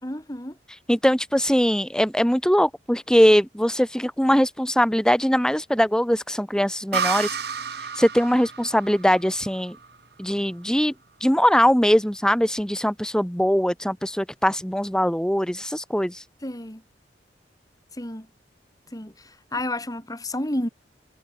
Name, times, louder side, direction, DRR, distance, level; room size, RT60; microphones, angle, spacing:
voice 1, 0.0-0.6 16.4-16.8 18.0-18.3 18.9-20.7, left 1 dB, 20° left, 5.0 m, -31 dB
voice 2, 0.7-7.4 7.8-9.8 10.2-10.9 11.2-16.2, equal, 5° left, 2.1 m, -21 dB
sound 1, 6.9-10.5, right 6 dB, 65° right, 2.2 m, -31 dB
head